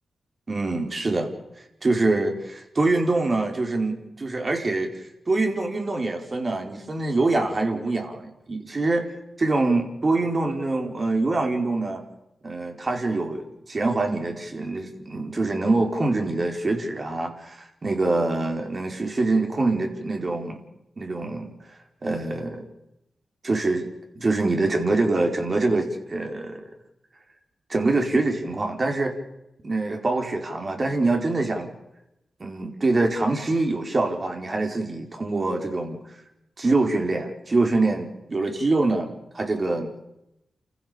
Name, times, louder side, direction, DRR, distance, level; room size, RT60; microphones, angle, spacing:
voice 1, 0.5-1.3 1.8-12.0 12.4-20.6 21.0-21.5 22.0-22.6 23.4-23.9 24.1-26.6 27.7-29.1 29.6-31.7 32.4-36.0 36.6-39.9, right 2 dB, 45° right, 3 dB, 4.9 m, -25 dB
29.5 x 15.0 x 7.2 m, 0.88 s
supercardioid pair, 45°, 0 cm